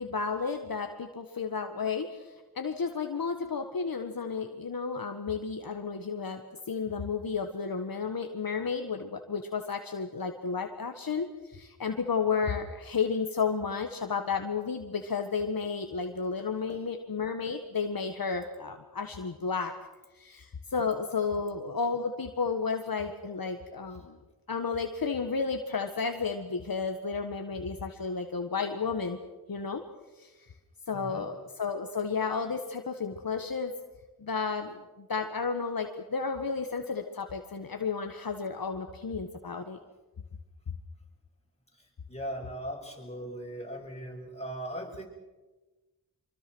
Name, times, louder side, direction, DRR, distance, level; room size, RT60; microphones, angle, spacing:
voice 1, 0.0-19.7 20.1-24.2 24.5-29.2 29.5-29.8 30.2-30.3 30.9-33.7 34.2-39.8 40.7-40.8, left 5 dB, 60° left, 5 dB, 1.6 m, -32 dB
voice 2, 30.9-31.3 42.1-45.1, right 1 dB, 15° left, 0 dB, 7.0 m, -39 dB
25.0 x 24.0 x 6.3 m, 1.2 s
cardioid pair, 45°, 38 cm